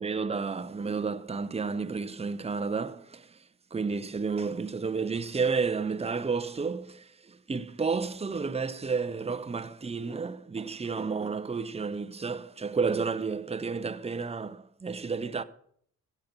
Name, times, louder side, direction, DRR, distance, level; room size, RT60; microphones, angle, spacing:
voice 1, 0.0-15.4, right 5 dB, 20° right, 0.7 m, -31 dB
14.5 x 7.0 x 5.9 m
cardioid pair, 70°, 34 cm